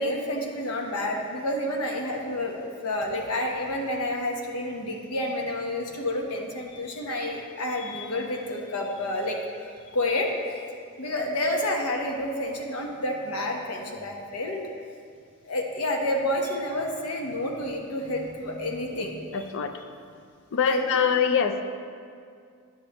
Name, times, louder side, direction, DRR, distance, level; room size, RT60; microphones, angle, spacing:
voice 1, 0.0-10.3 11.0-14.6 15.4-19.5 20.7-21.0, left 1 dB, 85° left, 1 dB, 1.0 m, -29 dB
voice 2, 19.3-19.7 20.5-21.6, left 7 dB, 60° left, 7 dB, 0.5 m, -24 dB
9.7 x 6.9 x 3.0 m, 2.2 s
head